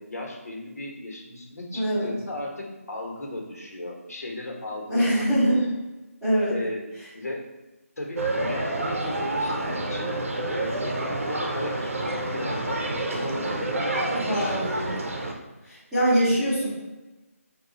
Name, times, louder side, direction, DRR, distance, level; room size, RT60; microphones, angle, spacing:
voice 1, 0.0-5.3 6.5-6.8 7.1-7.5 8.0-10.1 10.5-15.0, left 1 dB, 80° left, 0 dB, 1.1 m, -36 dB
voice 2, 1.7-2.1 4.9-5.7 6.2-6.5 14.3-15.0 15.6-16.7, equal, ahead, -19 dB, 0.7 m, -23 dB
sound 1, 8.2-15.3, right 2 dB, 60° right, 0.7 m, -28 dB
4.4 x 2.3 x 4.0 m, 1.1 s
figure-of-eight pair, 175°, 8 cm